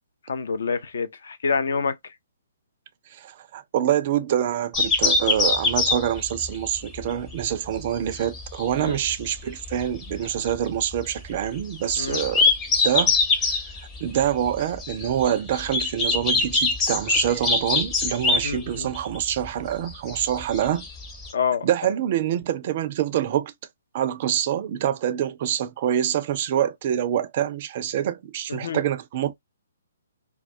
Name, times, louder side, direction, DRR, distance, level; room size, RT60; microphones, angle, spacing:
voice 1, 0.3-2.0 8.7-9.0 12.0-12.2 18.4-18.9 21.3-21.7 28.5-28.8, left 5 dB, 60° left, 0.4 m, -27 dB
voice 2, 3.2-12.4 12.8-13.1 14.0-20.9 21.6-23.5 23.9-29.3, right 10 dB, 40° right, 0.3 m, -26 dB
sound 1, 4.7-21.3, left 3 dB, 20° left, 0.6 m, -24 dB
2.2 x 2.2 x 2.5 m
figure-of-eight pair, 130°, 0 cm